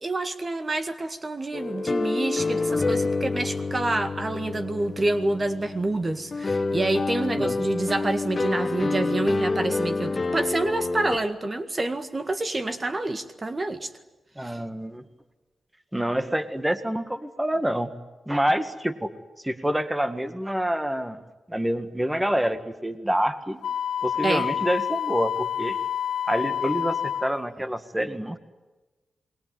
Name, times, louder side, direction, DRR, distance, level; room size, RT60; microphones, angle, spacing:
voice 1, 0.0-13.9 14.4-14.6 24.2-24.5, right 2 dB, 35° right, 9 dB, 1.8 m, -27 dB
sound 1, 1.5-11.2, left 3 dB, 40° left, 1.8 m, -28 dB
voice 2, 14.4-15.0 15.9-17.9 18.3-19.1 19.4-21.2 21.5-23.6 24.0-25.8 26.3-28.4, equal, 10° right, 10 dB, 1.8 m, -27 dB
Wind instrument woodwind instrument, 23.6-27.4, left 9 dB, 90° left, 1.1 m, -28 dB
27.5 x 21.5 x 9.5 m, 1.2 s
cardioid pair, 65°, 0 cm